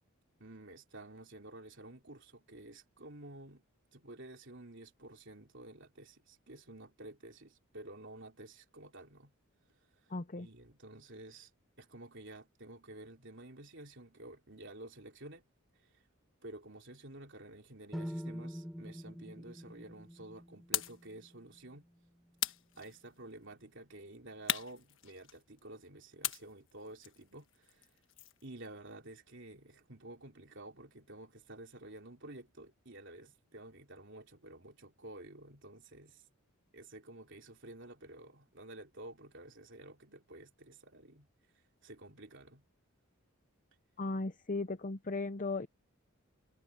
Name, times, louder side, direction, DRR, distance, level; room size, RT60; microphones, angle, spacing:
voice 1, 0.4-3.6 3.9-9.3 10.4-11.5 11.8-15.4 15.8-15.9 16.4-21.8 22.8-27.9 28.4-36.2 36.7-41.3 41.8-42.6, right 1 dB, 55° right, 3.7 m, -51 dB
voice 2, 10.1-10.5 44.0-45.7, left 3 dB, 35° left, 0.7 m, -36 dB
sound 1, 17.9-21.9, equal, ahead, 2.9 m, -45 dB
sound 2, 20.7-21.1 22.4-23.3 24.5-25.6 26.2-28.5, left 12 dB, 60° left, 1.3 m, -39 dB
head